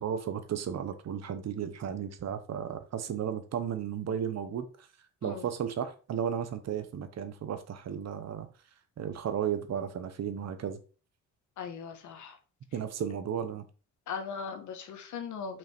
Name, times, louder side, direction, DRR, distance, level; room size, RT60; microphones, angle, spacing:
voice 1, 0.0-4.9 5.2-8.5 9.0-10.8 12.7-13.6, right 8 dB, 60° right, 1.2 m, -34 dB
voice 2, 11.6-12.4 14.1-15.6, left 6 dB, 75° left, 1.5 m, -39 dB
5.8 x 5.6 x 4.5 m
cardioid pair, 90°, 30 cm